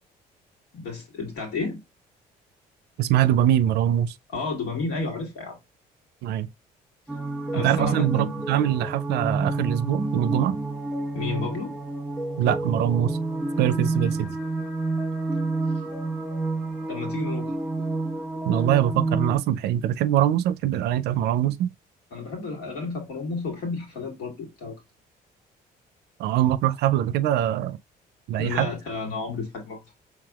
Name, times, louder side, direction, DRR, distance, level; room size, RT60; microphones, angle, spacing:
voice 1, 0.7-1.8 4.3-5.6 7.5-8.2 11.1-11.7 16.9-17.5 22.1-24.8 28.4-30.0, left 4 dB, 85° left, 2.3 m, -32 dB
voice 2, 3.0-4.1 6.2-6.5 7.5-10.6 12.4-13.2 13.6-14.3 18.5-21.7 26.2-27.8 28.3-28.7, right 11 dB, 75° right, 0.5 m, -23 dB
sound 1, 7.1-19.4, right 2 dB, ahead, 1.1 m, -29 dB
5.1 x 3.4 x 2.3 m
cardioid pair, 110°, 17 cm